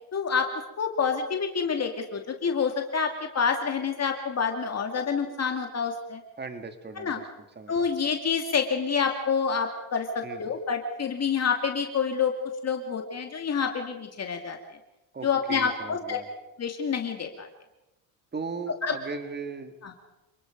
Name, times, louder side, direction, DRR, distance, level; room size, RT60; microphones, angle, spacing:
voice 1, 0.1-0.5 0.8-6.2 7.0-7.2 7.7-12.3 12.6-14.6 15.2-16.2 16.6-17.5 18.8-19.0 19.8-19.9, left 6 dB, 35° left, 4 dB, 2.4 m, -27 dB
voice 2, 6.4-7.2 7.6-7.9 10.2-10.4 15.1-16.3 18.3-19.7, right 4 dB, 25° right, 7 dB, 2.5 m, -37 dB
28.5 x 20.0 x 5.3 m, 0.95 s
cardioid pair, 105°, 44 cm